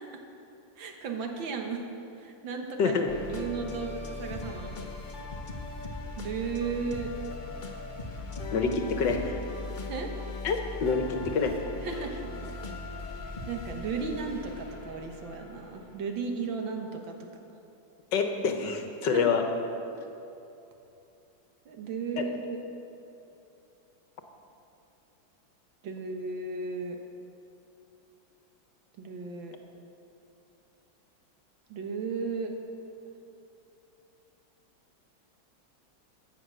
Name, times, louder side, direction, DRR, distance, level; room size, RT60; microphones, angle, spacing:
voice 1, 0.8-1.8 2.2-3.0 3.3-4.7 6.2-7.1 9.8-10.1 11.8-12.3 13.5-17.2 19.1-19.3 21.7-22.6 25.8-27.0 29.0-29.6 31.7-32.5, right 5 dB, 80° right, 3 dB, 2.0 m, -35 dB
voice 2, 2.8-3.1 8.5-9.4 10.4-11.6 18.1-19.4 22.2-22.3, left 5 dB, 70° left, 5 dB, 1.7 m, -27 dB
sound 1, 3.1-16.2, left 2 dB, 35° left, 0.8 m, -39 dB
14.5 x 9.0 x 6.4 m, 2.8 s
omnidirectional pair, 2.1 m